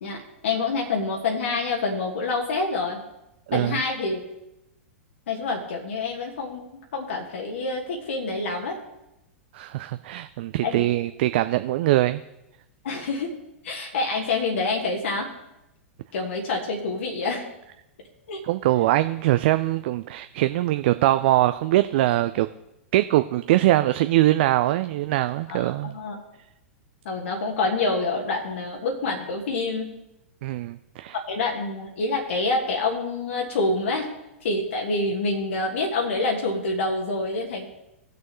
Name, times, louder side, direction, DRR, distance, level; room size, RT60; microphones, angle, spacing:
voice 1, 0.0-3.0 3.5-4.2 5.3-8.8 10.6-10.9 12.8-13.4 13.6-15.3 16.1-17.5 18.3-18.4 25.5-26.1 27.0-29.9 31.3-34.1 34.4-37.7, left 3 dB, 65° left, 0 dB, 1.4 m, -27 dB
voice 2, 3.5-3.8 9.5-12.2 18.4-22.5 22.9-26.0 30.4-31.2, right 15 dB, 55° right, 11 dB, 0.3 m, -22 dB
18.5 x 6.3 x 3.1 m, 0.89 s
figure-of-eight pair, 100°, 7 cm